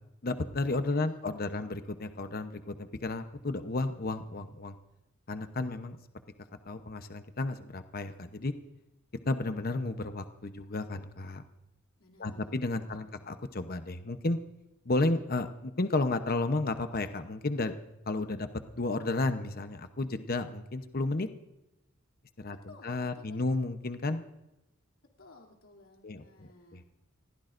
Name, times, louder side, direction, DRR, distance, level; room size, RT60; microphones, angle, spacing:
voice 1, 0.2-4.7 5.3-6.0 6.7-8.5 9.3-11.4 12.2-14.4 14.8-17.7 18.1-18.5 18.7-21.3 22.4-24.2 26.0-26.8, left 2 dB, 45° left, 9 dB, 0.9 m, -32 dB
voice 2, 0.9-1.7 12.0-13.3 22.5-23.6 25.2-26.8, left 2 dB, 75° left, 1 dB, 3.0 m, -56 dB
29.5 x 15.0 x 2.6 m, 0.93 s
head